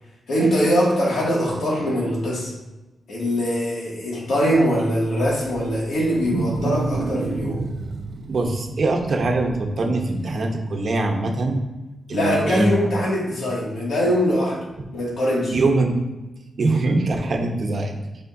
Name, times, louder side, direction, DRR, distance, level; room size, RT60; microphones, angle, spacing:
voice 1, 0.3-2.5 3.1-7.6 12.1-14.6 14.9-15.6, equal, 80° left, -5 dB, 2.1 m, -22 dB
Wild animals, 5.2-10.3, right 3 dB, 70° right, 0.6 m, -30 dB
voice 2, 8.3-11.6 12.1-12.7 15.5-16.0 16.6-18.0, right 2 dB, 50° right, 2 dB, 0.9 m, -22 dB
8.5 x 4.3 x 2.7 m, 1.1 s
wide cardioid pair, 115°, 0 cm